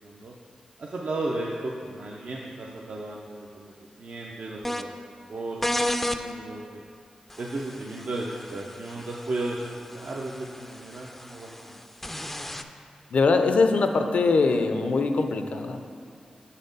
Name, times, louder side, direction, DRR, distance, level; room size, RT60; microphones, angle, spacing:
voice 1, 0.0-0.3 0.8-3.7 4.0-4.9 5.3-6.8 7.4-11.8, right 2 dB, 65° right, -3 dB, 0.5 m, -34 dB
sound 1, 4.6-4.8 5.6-6.2 7.3-12.6, left 1 dB, 10° left, 0.3 m, -33 dB
voice 2, 13.1-15.9, left 3 dB, 75° left, 6 dB, 0.4 m, -22 dB
6.2 x 4.1 x 5.2 m, 2.3 s
cardioid pair, 70°, 2 cm